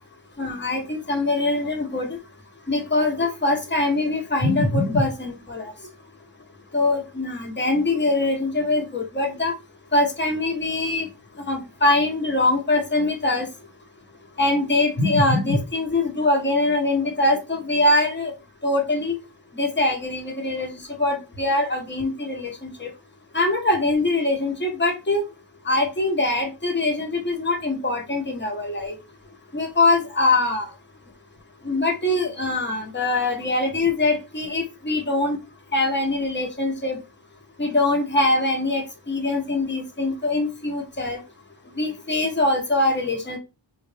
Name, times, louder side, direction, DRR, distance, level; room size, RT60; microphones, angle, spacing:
voice 1, 0.4-2.2 2.7-5.7 6.7-9.6 9.9-11.1 11.5-13.5 14.4-18.3 18.6-19.2 19.5-22.9 23.3-25.2 25.6-29.0 29.5-30.7 31.6-35.4 35.7-37.0 37.6-41.2 41.7-43.4, left 2 dB, 25° left, 1 dB, 0.9 m, -23 dB
3.7 x 2.3 x 3.2 m, 0.28 s
wide cardioid pair, 100°, 47 cm